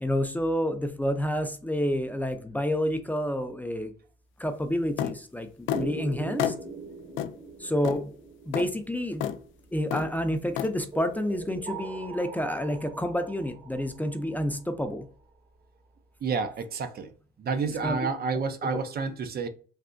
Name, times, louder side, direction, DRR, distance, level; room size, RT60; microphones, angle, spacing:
voice 1, 0.0-3.9 4.4-6.5 7.6-8.1 8.5-9.3 9.7-15.1 17.6-18.0, equal, 10° left, 0.4 m, -29 dB
sound 1, 5.0-5.2 5.7-5.9 6.4-6.6 7.2-7.3 7.8-8.0 8.5-8.7 9.2-9.4 9.9-10.1 10.6-10.7, left 10 dB, 75° left, 0.4 m, -29 dB
sound 2, 5.7-10.0 10.9-14.7, right 4 dB, 30° right, 0.9 m, -41 dB
voice 2, 16.2-17.1 17.4-19.5, right 5 dB, 50° right, 0.5 m, -29 dB
3.3 x 2.6 x 2.5 m
cardioid pair, 90°, 20 cm